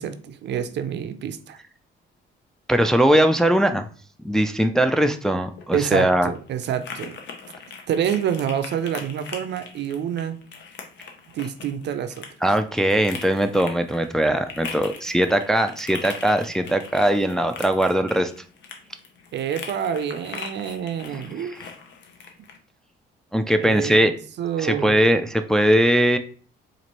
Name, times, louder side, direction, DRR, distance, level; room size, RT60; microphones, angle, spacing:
voice 1, 0.0-1.6 5.7-7.2 7.9-10.4 11.3-12.3 19.3-21.6 23.6-25.1, right 8 dB, 60° right, 0.4 m, -27 dB
voice 2, 2.7-3.9 4.2-6.3 12.4-18.3 21.1-21.6 23.3-24.1 24.6-26.2, right 1 dB, 5° left, 0.3 m, -20 dB
sound 1, 5.4-22.6, left 5 dB, 65° left, 0.7 m, -41 dB
4.1 x 2.5 x 3.0 m
cardioid pair, 90°, 20 cm